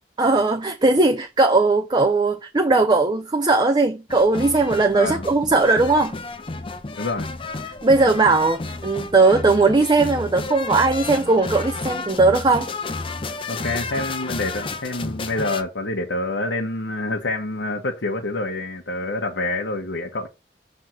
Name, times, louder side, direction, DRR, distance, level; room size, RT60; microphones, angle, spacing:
voice 1, 0.2-6.1 7.6-12.7, right 3 dB, 25° right, 0.5 m, -18 dB
Fortaleza election campaign, 4.1-15.6, left 3 dB, 30° left, 0.6 m, -32 dB
voice 2, 4.9-5.2 7.0-7.3 13.5-20.3, left 2 dB, 85° left, 1.1 m, -27 dB
6.4 x 3.4 x 5.8 m
head